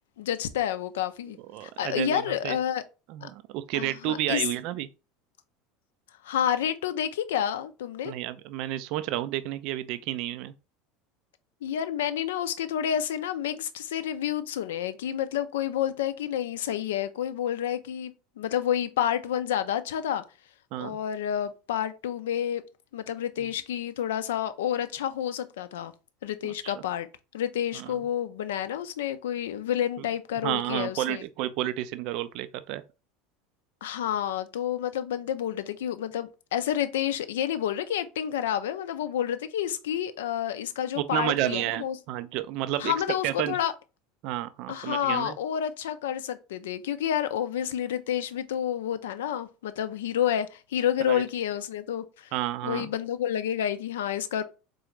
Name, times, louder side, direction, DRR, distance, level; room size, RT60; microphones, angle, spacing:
voice 1, 0.2-2.8 3.2-3.3 3.7-4.4 6.2-8.1 11.6-20.2 20.8-22.6 22.9-25.9 26.2-27.1 27.3-31.2 33.8-42.0 42.8-43.7 44.7-52.3 52.6-54.4, left 10 dB, 65° left, 0.4 m, -29 dB
voice 2, 1.5-2.6 3.1-4.9 8.0-10.5 20.7-21.0 26.6-26.7 27.7-27.9 30.4-32.8 41.0-42.9 43.2-43.6 44.2-45.3 51.0-51.2 52.3-52.9, right 14 dB, 50° right, 0.3 m, -31 dB
4.0 x 3.8 x 3.1 m
figure-of-eight pair, 70°, 0 cm